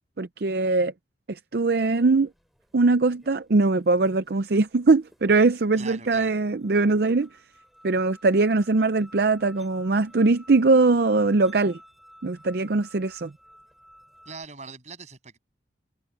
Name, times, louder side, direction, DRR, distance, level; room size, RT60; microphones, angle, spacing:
voice 1, 0.2-0.9 1.3-2.3 2.7-7.3 7.8-11.8 12.2-13.3, right 3 dB, 55° right, 0.6 m, -21 dB
sound 1, 1.9-2.1 3.1-3.3 4.1-4.2 5.1-5.2 6.2-6.3 6.4-14.4, equal, ahead, 4.2 m, -53 dB
voice 2, 5.8-6.3 14.3-15.4, right 4 dB, 40° right, 7.5 m, -41 dB
head